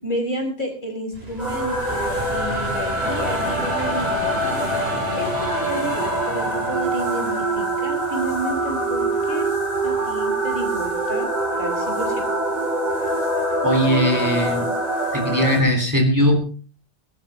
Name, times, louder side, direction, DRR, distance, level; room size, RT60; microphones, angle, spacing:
voice 1, 0.0-4.4 5.2-9.5 9.8-11.3 11.6-12.3, equal, 50° left, 2 dB, 5.2 m, -31 dB
sound 1, 1.1-12.2 12.9-13.6 14.4-14.6 14.9-15.1, right 1 dB, 75° right, 5.3 m, -34 dB
sound 2, 1.4-15.6, right 1 dB, 45° right, 6.0 m, -24 dB
voice 2, 13.6-14.7 15.1-16.4, equal, 20° right, 3 dB, 3.5 m, -19 dB
22.5 x 12.0 x 3.5 m, 0.37 s
omnidirectional pair, 1.0 m